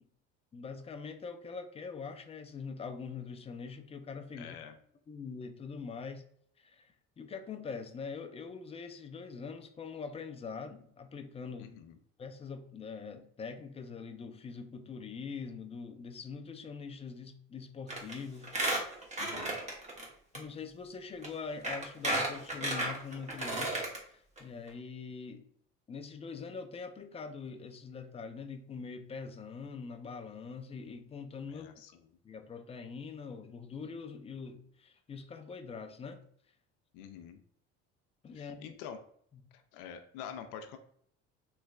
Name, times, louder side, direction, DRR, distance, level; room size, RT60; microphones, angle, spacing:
voice 1, 0.5-4.6 5.1-6.2 6.6-11.7 12.2-18.5 20.3-25.5 25.9-31.7 32.2-36.2 38.2-38.7, left 5 dB, 20° left, 0.4 m, -43 dB
voice 2, 4.4-4.7 11.6-12.0 19.2-19.6 31.5-31.9 36.9-37.4 38.3-39.0 39.5-40.8, left 8 dB, 75° left, 0.5 m, -46 dB
Squeak, 17.9-18.1 18.4-20.0 20.3-20.4 21.2-21.3 21.6-24.0 24.4-24.5 24.7-24.8, right 1 dB, 25° right, 1.1 m, -33 dB
3.2 x 3.1 x 2.3 m
supercardioid pair, 85°, 30 cm